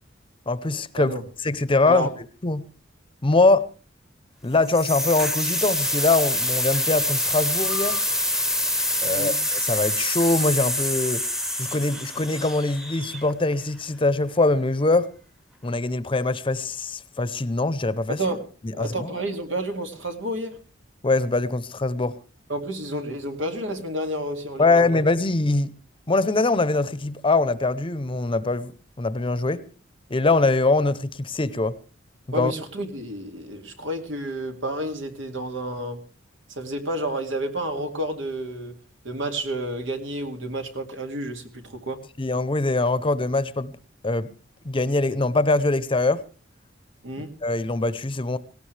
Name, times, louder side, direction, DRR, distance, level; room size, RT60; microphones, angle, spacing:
voice 1, 0.5-1.1 1.4-2.1 2.4-2.7 3.2-3.7 4.4-8.0 9.0-11.2 11.6-15.1 15.6-18.2 18.6-19.1 21.0-22.2 24.6-25.7 26.1-28.7 29.0-29.6 30.1-31.7 32.3-32.5 42.2-43.7 44.0-44.3 44.6-46.2 47.4-48.4, left 3 dB, 30° left, 0.7 m, -23 dB
sound 1, 4.7-13.5, left 1 dB, 5° right, 0.9 m, -26 dB
voice 2, 18.1-20.6 22.5-24.9 32.3-36.0 36.5-38.8 39.0-42.0 47.0-47.3, right 1 dB, 90° right, 2.3 m, -30 dB
18.0 x 17.5 x 3.3 m
head